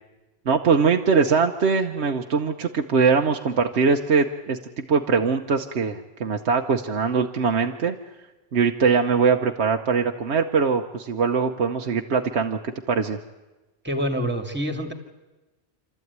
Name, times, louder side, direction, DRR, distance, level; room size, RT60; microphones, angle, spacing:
voice 1, 0.5-8.0 8.5-13.2, right 5 dB, 65° right, 3 dB, 1.2 m, -22 dB
voice 2, 13.8-14.9, equal, 10° right, 6 dB, 2.3 m, -26 dB
28.0 x 13.0 x 9.5 m, 1.1 s
omnidirectional pair, 1.2 m